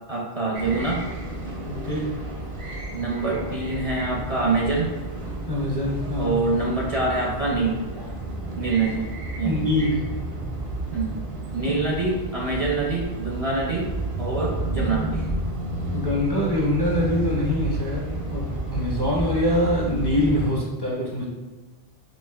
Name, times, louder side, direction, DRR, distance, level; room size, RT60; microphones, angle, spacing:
voice 1, 0.1-1.0 2.9-4.9 6.2-7.8 8.5-9.1 9.4-9.7 10.9-11.2 11.5-13.9 14.2-15.3, right 3 dB, 45° right, -3 dB, 0.5 m, -25 dB
sound 1, 0.5-20.5, right 2 dB, 80° right, 1.1 m, -31 dB
voice 2, 1.7-2.1 5.5-6.4 9.4-10.0 15.9-21.2, left 1 dB, 30° left, -5 dB, 0.6 m, -24 dB
5.2 x 2.9 x 2.3 m, 1.2 s
omnidirectional pair, 1.0 m